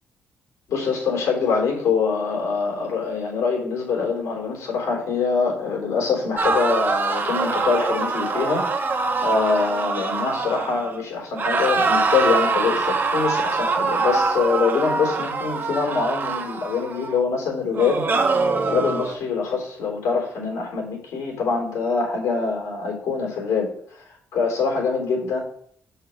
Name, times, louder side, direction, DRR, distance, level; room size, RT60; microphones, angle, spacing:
voice 1, 0.7-8.6 9.2-18.1 18.6-24.0 24.3-25.4, left 5 dB, 80° left, 0 dB, 3.5 m, -24 dB
sound 1, 6.4-11.0 11.4-17.2 17.7-19.2, right 4 dB, 40° right, 1.2 m, -24 dB
6.2 x 5.7 x 6.3 m, 0.62 s
cardioid pair, 75°, 5 cm